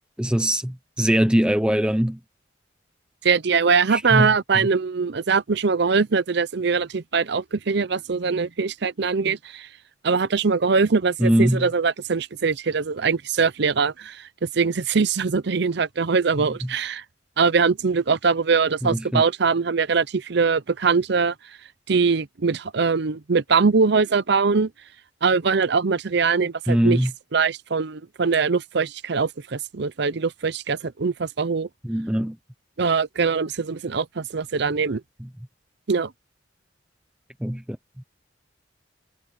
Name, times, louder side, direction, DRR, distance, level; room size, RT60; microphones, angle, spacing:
voice 1, 0.2-2.2 3.9-4.3 4.6-4.7 11.2-11.6 18.8-19.2 26.7-27.1 31.8-32.4 37.4-37.6, equal, 5° right, 0.7 m, -21 dB
voice 2, 3.2-9.7 10.0-17.0 17.4-21.3 21.9-24.7 25.2-27.0 27.3-31.7 32.8-35.0 35.9-36.1, right 5 dB, 60° right, 0.7 m, -22 dB
head